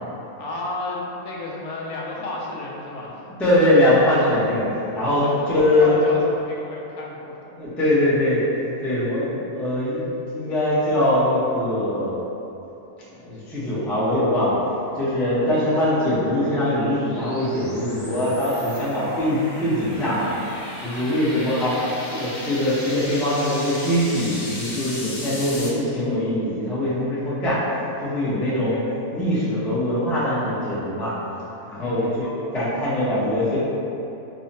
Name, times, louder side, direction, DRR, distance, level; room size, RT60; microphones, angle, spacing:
voice 1, 0.4-3.3 5.1-7.4 20.9-21.5 28.5-28.7 31.8-32.2, left 2 dB, 75° left, -3 dB, 1.0 m, -33 dB
voice 2, 3.4-6.0 7.5-12.2 13.2-20.3 20.8-27.6 28.0-28.8 29.1-31.1 31.7-33.6, left 1 dB, ahead, -10 dB, 0.3 m, -22 dB
sound 1, 14.5-25.7, left 1 dB, 45° left, 1.3 m, -37 dB
5.4 x 2.0 x 2.7 m, 2.9 s
omnidirectional pair, 1.6 m